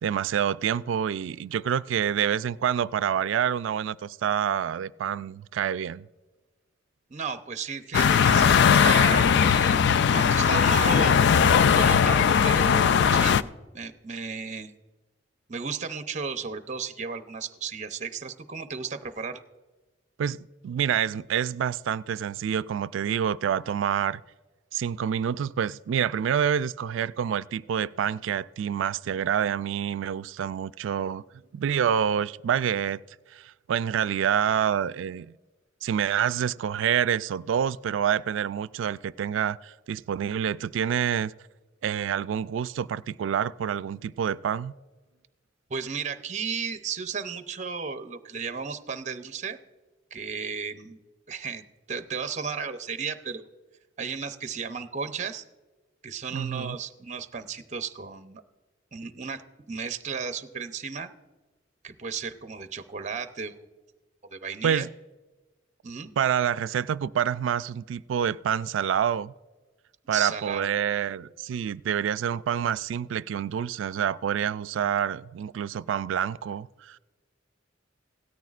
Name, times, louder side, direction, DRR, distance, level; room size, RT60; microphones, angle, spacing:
voice 1, 0.0-6.1 20.2-24.2 24.7-31.2 31.5-33.0 33.3-35.3 35.8-41.3 41.8-44.7 56.3-56.8 64.6-64.9 66.2-69.3 70.1-77.0, right 8 dB, 75° right, 0.3 m, -27 dB
voice 2, 7.1-11.2 11.7-13.5 13.7-14.7 15.5-19.4 45.7-49.6 50.1-51.0 51.3-53.4 54.0-55.4 56.0-58.4 58.9-61.1 61.8-63.6 64.3-64.9 65.8-66.1 70.1-70.7, right 5 dB, 40° right, 0.7 m, -34 dB
sound 1, 7.9-13.4, left 7 dB, 60° left, 0.3 m, -19 dB
17.0 x 13.5 x 2.4 m
head